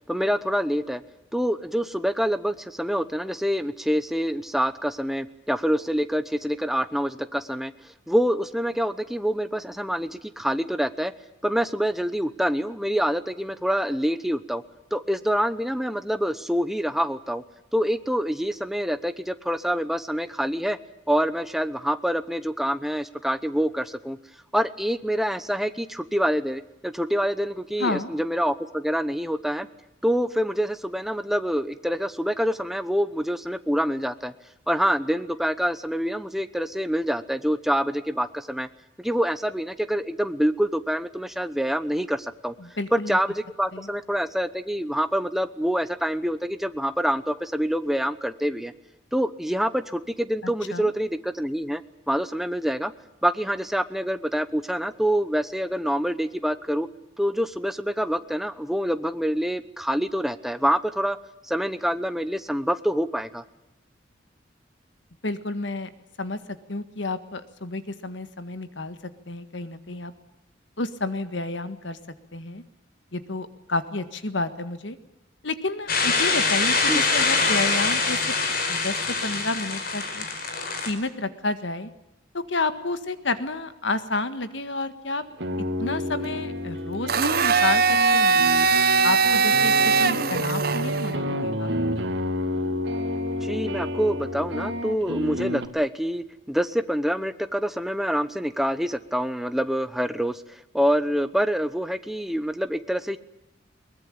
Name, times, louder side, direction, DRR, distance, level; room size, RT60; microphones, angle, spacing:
voice 1, 0.1-1.0 1.3-7.7 8.1-11.1 11.4-14.6 14.9-17.4 17.7-20.8 21.1-24.2 24.5-29.7 30.0-34.3 34.7-38.7 39.0-42.5 42.9-48.7 49.1-51.8 52.1-52.9 53.2-56.9 57.2-61.2 61.4-63.4 76.9-77.0 93.4-103.2, equal, ahead, 11 dB, 0.9 m, -26 dB
voice 2, 27.8-28.1 42.6-43.2 43.7-43.9 50.7-50.9 65.2-65.9 66.2-66.4 66.7-69.0 69.3-70.1 70.8-72.0 72.3-72.6 73.1-75.0 75.4-78.4 78.7-80.2 80.8-81.9 82.3-85.2 85.8-87.8 88.1-88.4 89.0-91.8, left 2 dB, 70° left, 11 dB, 1.7 m, -30 dB
sound 1, 75.9-80.9, left 4 dB, 50° left, 4.9 m, -24 dB
sound 2, 85.2-95.7, left 1 dB, 65° right, 2.3 m, -29 dB
Domestic sounds home sounds, 87.1-91.1, right 5 dB, 50° right, 1.2 m, -20 dB
22.0 x 20.5 x 8.7 m, 0.88 s
head